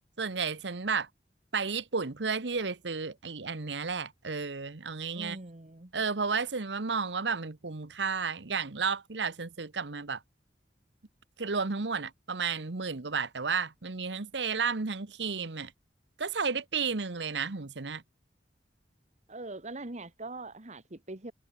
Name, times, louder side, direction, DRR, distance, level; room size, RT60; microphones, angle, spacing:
voice 1, 0.2-1.1 1.5-5.4 5.9-10.2 11.4-15.7 16.2-18.0, right 5 dB, 85° right, 1.1 m, -32 dB
voice 2, 5.1-5.9 19.3-21.3, right 2 dB, 40° right, 1.8 m, -42 dB
head